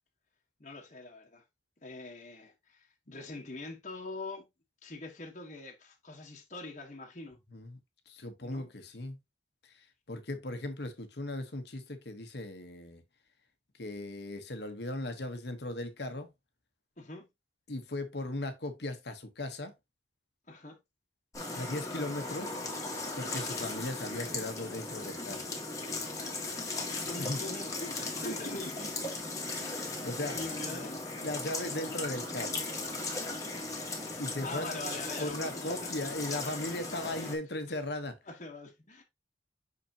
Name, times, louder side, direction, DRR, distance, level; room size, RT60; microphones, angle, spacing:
voice 1, 0.6-1.4 1.8-4.5 4.8-7.4 8.4-8.7 17.0-17.3 20.5-20.8 26.7-29.4 30.3-31.1 34.4-35.9 36.4-36.8 37.7-37.8 38.2-39.0, left 2 dB, 40° left, 1.3 m, -44 dB
voice 2, 8.1-9.2 9.6-13.0 13.8-16.3 17.7-19.7 21.5-22.6 23.2-25.4 27.1-27.4 28.2-28.6 29.5-30.4 31.2-32.6 34.2-34.7 35.2-38.2, left 1 dB, 60° left, 1.2 m, -38 dB
sound 1, 21.3-37.4, left 2 dB, 20° left, 1.6 m, -37 dB
5.9 x 5.6 x 2.8 m
head